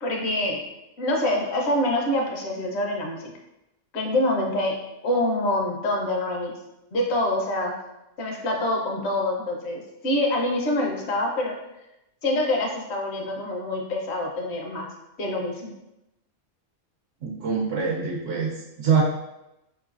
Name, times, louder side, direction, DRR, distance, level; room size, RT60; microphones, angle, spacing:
voice 1, 0.0-0.6 1.0-3.3 3.9-4.8 5.0-6.5 6.9-7.7 8.2-11.5 12.2-14.9 15.2-15.7, left 1 dB, 60° left, 0 dB, 1.0 m, -25 dB
voice 2, 17.2-19.0, right 6 dB, 75° right, -1 dB, 0.9 m, -24 dB
4.8 x 3.0 x 2.4 m, 0.92 s
omnidirectional pair, 1.3 m